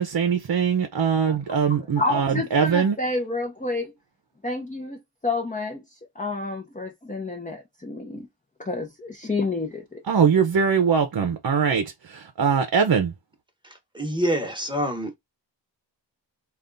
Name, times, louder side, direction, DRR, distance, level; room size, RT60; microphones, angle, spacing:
voice 1, 0.0-3.0 10.1-13.1, right 6 dB, 55° right, 0.7 m, -22 dB
voice 2, 1.7-3.9 4.4-5.8 6.2-8.3 8.6-10.0, left 2 dB, 20° left, 0.8 m, -29 dB
voice 3, 13.9-15.2, equal, 10° right, 1.1 m, -26 dB
3.4 x 2.5 x 3.9 m
wide cardioid pair, 85°, 44 cm